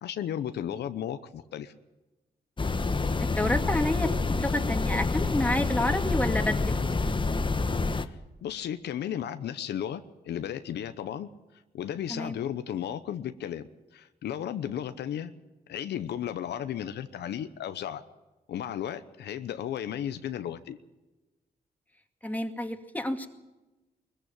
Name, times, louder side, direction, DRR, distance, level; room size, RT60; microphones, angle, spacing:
voice 1, 0.0-1.7 8.0-8.2 8.4-11.3 11.7-13.7 13.9-15.3 15.7-18.0 18.5-20.8, left 10 dB, 85° left, 11 dB, 0.9 m, -34 dB
sound 1, 2.6-8.1, left 3 dB, 30° left, 1.1 m, -27 dB
voice 2, 3.3-4.1 4.4-6.7 12.1-12.4 22.2-23.3, left 1 dB, 10° left, 5 dB, 2.3 m, -29 dB
21.0 x 15.0 x 9.0 m, 1.1 s
cardioid pair, 70°, 17 cm